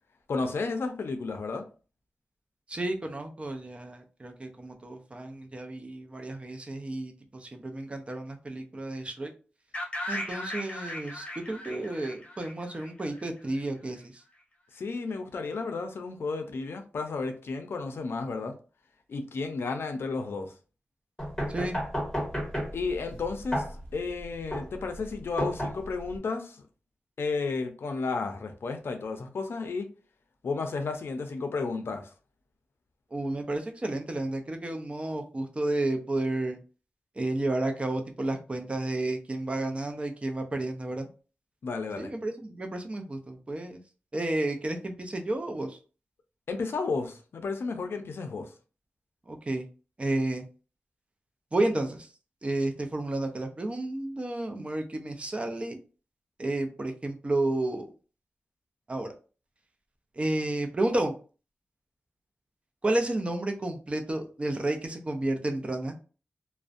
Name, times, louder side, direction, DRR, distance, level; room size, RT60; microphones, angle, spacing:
voice 1, 0.3-1.6 14.7-18.5 19.1-20.5 22.7-23.6 23.9-26.6 27.2-29.9 30.4-32.1 41.6-42.1 46.5-48.5, left 4 dB, 80° left, 0.4 m, -32 dB
voice 2, 2.7-7.1 7.4-9.3 10.1-14.0 21.5-21.8 33.1-36.6 37.2-41.1 42.0-43.8 44.1-45.8 49.3-49.6 50.0-50.5 51.5-52.1 52.4-55.8 56.4-57.9 58.9-59.1 60.2-61.1 62.8-65.9, right 2 dB, 30° right, 0.5 m, -31 dB
sound 1, 9.7-13.6, left 1 dB, 30° left, 0.5 m, -38 dB
sound 2, 21.2-26.2, equal, 10° left, 1.2 m, -33 dB
2.4 x 2.1 x 2.5 m
wide cardioid pair, 100°, 4 cm